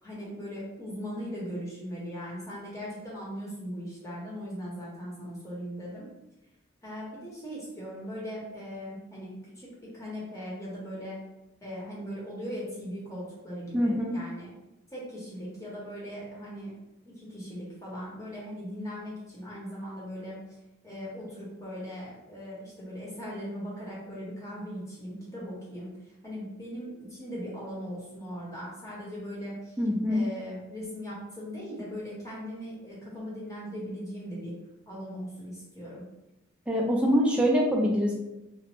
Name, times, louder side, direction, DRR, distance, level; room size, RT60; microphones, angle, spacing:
voice 1, 0.0-6.1 6.8-11.2 11.6-14.5 14.9-16.7 17.0-20.4 20.8-29.8 30.1-34.6 34.9-36.1, equal, 15° left, -6 dB, 0.9 m, -39 dB
voice 2, 13.7-14.2 29.8-30.2 36.7-38.2, equal, 5° right, -2 dB, 0.3 m, -24 dB
3.0 x 2.0 x 3.0 m, 0.98 s
head